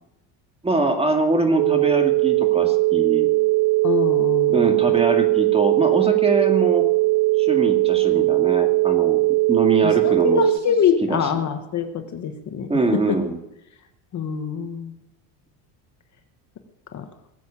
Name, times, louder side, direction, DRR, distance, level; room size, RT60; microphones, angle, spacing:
voice 1, 0.6-3.3 4.5-6.9 7.4-9.2 9.5-10.4 11.1-11.2 12.7-13.4, right 2 dB, 10° right, 4 dB, 2.1 m, -23 dB
sound 1, 1.6-10.6, right 22 dB, 70° right, 0.7 m, -19 dB
voice 2, 3.8-4.9 9.8-13.2 14.1-15.0 16.9-17.1, left 7 dB, 35° left, 7 dB, 1.5 m, -25 dB
19.5 x 8.2 x 8.7 m, 0.87 s
cardioid pair, 140°, 47 cm